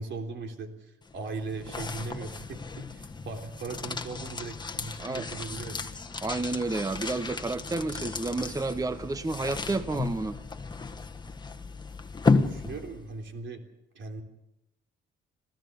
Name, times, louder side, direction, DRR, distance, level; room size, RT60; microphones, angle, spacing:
voice 1, 0.0-5.9 9.7-9.9 12.2-13.6 14.0-14.2, right 3 dB, 70° right, 4 dB, 3.5 m, -39 dB
sound 1, 1.0-13.2, left 4 dB, 20° left, 1.4 m, -33 dB
voice 2, 6.2-10.4, right 3 dB, 15° right, 13 dB, 0.8 m, -30 dB
26.0 x 16.0 x 6.9 m, 0.93 s
cardioid pair, 90°, 20 cm